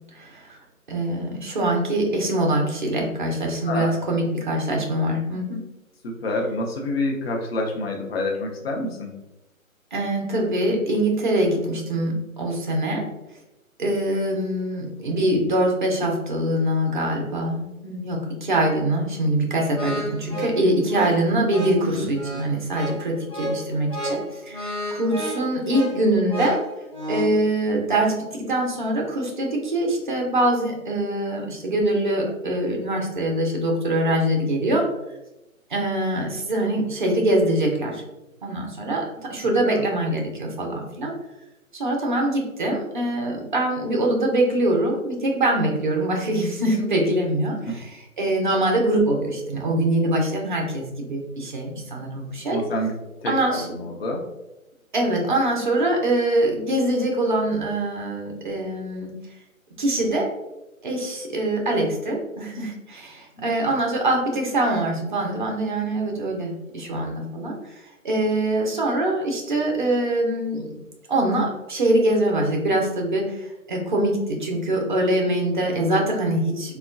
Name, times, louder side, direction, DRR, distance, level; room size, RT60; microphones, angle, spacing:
voice 1, 0.1-0.6 0.9-5.6 9.9-13.0 13.8-26.6 27.1-34.9 35.7-38.0 38.4-41.1 41.7-52.6 53.3-53.8 54.9-59.1 59.8-60.3 60.8-70.7 71.1-76.8, right 1 dB, 35° right, 0 dB, 0.5 m, -23 dB
voice 2, 3.6-4.0 6.0-9.2 21.9-22.1 39.6-39.8 47.7-47.8 52.5-52.9 53.2-54.3, left 2 dB, 45° left, 0 dB, 0.7 m, -28 dB
sound 1, 19.8-27.4, equal, 5° left, 0.7 m, -31 dB
3.4 x 2.1 x 2.5 m, 0.97 s
figure-of-eight pair, 145°, 42 cm